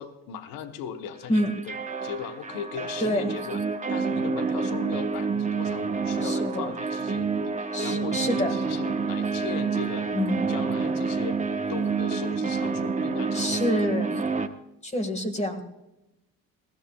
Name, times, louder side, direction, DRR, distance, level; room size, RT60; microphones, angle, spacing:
voice 1, 0.0-3.6 3.9-10.1 10.5-11.4 11.7-13.7, left 8 dB, 75° left, 9 dB, 1.1 m, -38 dB
sound 1, 1.3-14.5, right 4 dB, 20° right, 1.1 m, -28 dB
voice 2, 3.0-3.3 6.2-6.7 7.7-8.5 10.1-10.4 13.3-14.2 14.8-15.6, left 1 dB, 20° left, 7 dB, 1.7 m, -27 dB
20.0 x 15.5 x 2.3 m, 0.93 s
supercardioid pair, 85°, 34 cm